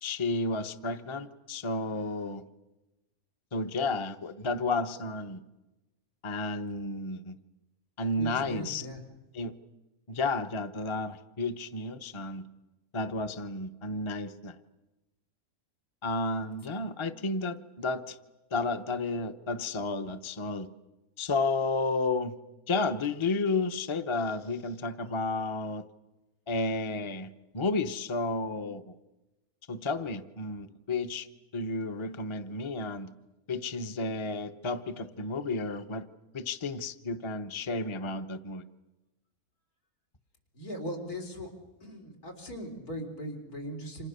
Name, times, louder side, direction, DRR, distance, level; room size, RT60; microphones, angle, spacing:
voice 1, 0.0-2.4 3.5-5.4 6.2-7.4 8.0-8.9 9.3-9.6 10.1-12.4 12.9-14.6 16.0-18.2 18.5-20.7 21.2-22.4 22.7-25.8 26.5-28.9 29.7-31.3 31.5-33.1 33.5-36.1 36.3-38.6, left 3 dB, 25° left, 8 dB, 0.8 m, -32 dB
voice 2, 8.2-9.0 40.5-41.5 41.8-44.1, equal, 85° left, 5 dB, 4.6 m, -39 dB
29.0 x 26.5 x 6.8 m, 1.0 s
omnidirectional pair, 1.6 m